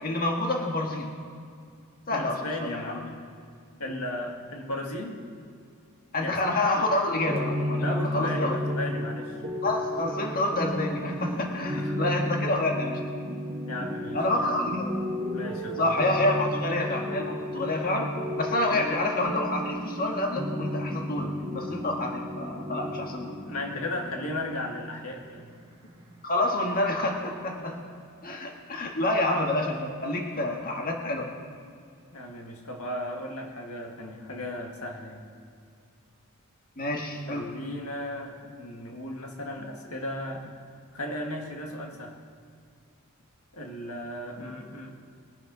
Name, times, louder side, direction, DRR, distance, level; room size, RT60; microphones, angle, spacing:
voice 1, 0.0-1.1 2.1-3.1 6.1-8.6 9.6-13.0 14.1-14.9 15.8-18.1 18.4-23.3 26.2-27.8 28.2-31.3 36.8-37.5, left 2 dB, 40° left, 1 dB, 1.6 m, -28 dB
voice 2, 2.1-3.2 3.8-5.2 6.2-6.4 7.8-9.4 11.7-12.0 13.6-14.2 15.3-16.0 23.4-25.6 27.6-27.7 32.1-35.2 37.3-40.5 40.9-42.2 43.5-44.9, left 1 dB, 80° left, 2 dB, 1.7 m, -36 dB
sound 1, 7.2-26.8, left 1 dB, 25° right, 2.2 m, -33 dB
21.5 x 11.0 x 4.0 m, 2.3 s
head